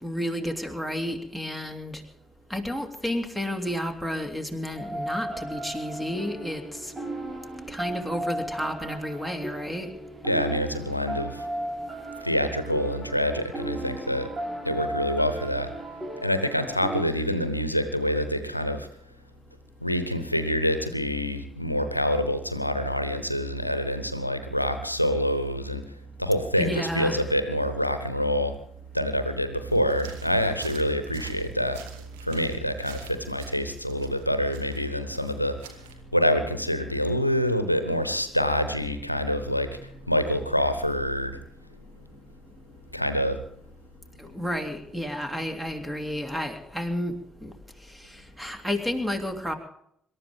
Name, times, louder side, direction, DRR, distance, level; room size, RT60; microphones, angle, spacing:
voice 1, 0.0-2.0 2.5-6.9 7.7-9.9 26.6-27.3 44.2-47.1 47.4-47.5 48.0-49.6, equal, 5° right, 5 dB, 3.0 m, -31 dB
sound 1, 4.8-17.0, right 1 dB, 25° right, 5.2 m, -35 dB
voice 2, 10.2-11.5 12.2-14.3 14.6-15.7 16.2-18.9 19.8-25.9 26.2-28.5 28.9-31.8 32.2-35.7 36.1-41.4 42.9-43.4, equal, 90° left, 10 dB, 0.9 m, -26 dB
sound 2, 29.7-35.9, right 8 dB, 70° right, 1.7 m, -49 dB
26.0 x 13.0 x 3.7 m, 0.70 s
figure-of-eight pair, 45°, 0 cm